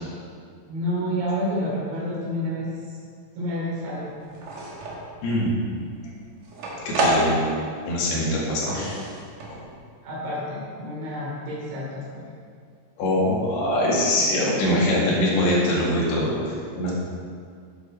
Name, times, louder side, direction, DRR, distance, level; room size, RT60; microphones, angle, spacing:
voice 1, 0.7-2.7 3.4-4.2 10.0-12.2, equal, 75° right, -6 dB, 5.3 m, -29 dB
sound 1, 4.1-5.1 5.6-7.8 8.0-9.8, right 1 dB, 60° right, 2.7 m, -28 dB
voice 2, 5.2-5.5 6.9-7.4 7.8-9.0 13.0-16.3 16.7-16.9, left 1 dB, 65° left, -5 dB, 3.9 m, -22 dB
11.0 x 8.0 x 4.3 m, 2.2 s
omnidirectional pair, 5.3 m